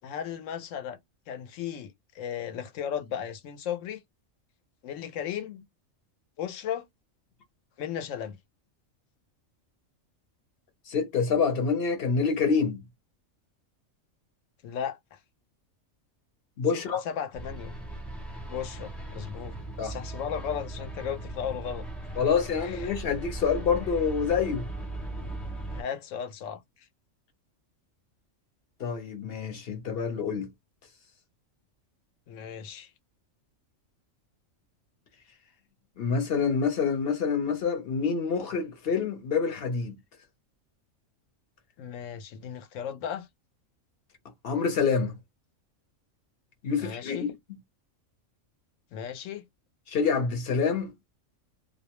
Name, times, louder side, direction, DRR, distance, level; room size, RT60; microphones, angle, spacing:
voice 1, 0.0-1.0 1.3-4.0 4.8-5.7 6.4-6.8 7.8-8.4 14.6-15.2 16.7-17.8 18.5-19.6 19.8-21.9 22.6-23.0 25.7-26.9 32.3-32.9 41.8-43.3 46.8-47.3 48.9-49.4, left 8 dB, 80° left, 0.9 m, -36 dB
voice 2, 10.9-12.8 16.6-17.0 19.8-20.0 22.2-24.7 28.8-30.5 36.0-40.0 44.4-45.2 46.6-47.2 49.9-50.9, left 5 dB, 55° left, 0.9 m, -27 dB
sound 1, 17.3-25.8, right 2 dB, ahead, 0.3 m, -38 dB
2.4 x 2.1 x 2.9 m
omnidirectional pair, 1.3 m